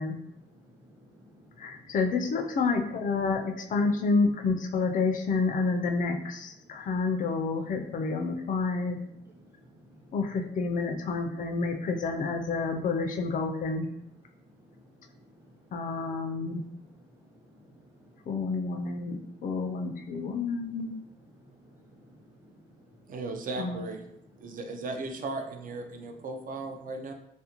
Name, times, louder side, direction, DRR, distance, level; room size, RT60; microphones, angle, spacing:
voice 1, 0.0-1.9 3.2-3.3 6.6-6.8 8.0-8.1 9.4-10.2 14.5-15.7 16.1-18.4 19.3-20.1 20.3-20.5 21.3-23.1 24.4-24.6, equal, 10° right, -2 dB, 0.8 m, -57 dB
voice 2, 1.6-9.0 10.1-13.9 15.7-16.6 18.3-20.9 23.6-23.8, left 4 dB, 40° left, 5 dB, 0.4 m, -29 dB
voice 3, 23.1-24.0 24.4-27.1, right 3 dB, 45° right, 5 dB, 0.4 m, -36 dB
2.4 x 2.1 x 2.8 m, 0.79 s
cardioid pair, 90°, 20 cm